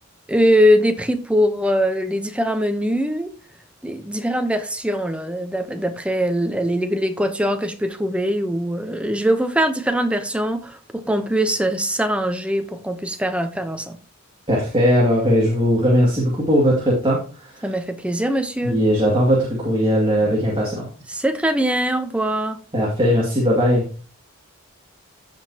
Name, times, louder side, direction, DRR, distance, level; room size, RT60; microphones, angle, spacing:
voice 1, 0.3-3.3 3.8-14.0 17.6-18.8 21.1-22.6, equal, 5° right, 0.8 m, -22 dB
voice 2, 14.5-17.6 18.6-20.9 22.7-23.8, equal, 25° right, 2.2 m, -19 dB
15.0 x 5.1 x 2.8 m
head